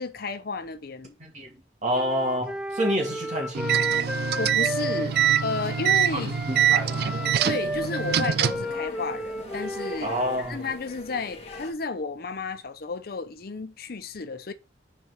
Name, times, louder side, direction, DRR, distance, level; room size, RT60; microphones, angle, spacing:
voice 1, 0.0-1.1 4.4-5.2 5.4-6.3 7.4-10.2 10.5-14.5, left 4 dB, 55° left, 0.6 m, -32 dB
voice 2, 1.2-1.5 1.8-4.0 6.1-7.2 10.0-10.6, equal, 40° right, 2.3 m, -28 dB
Wind instrument woodwind instrument, 1.9-6.0 6.3-10.5, equal, 5° right, 0.7 m, -33 dB
sound 1, 3.5-8.7, right 10 dB, 60° right, 0.3 m, -24 dB
sound 2, 3.8-11.7, left 1 dB, 35° left, 1.4 m, -42 dB
6.0 x 4.5 x 4.5 m
head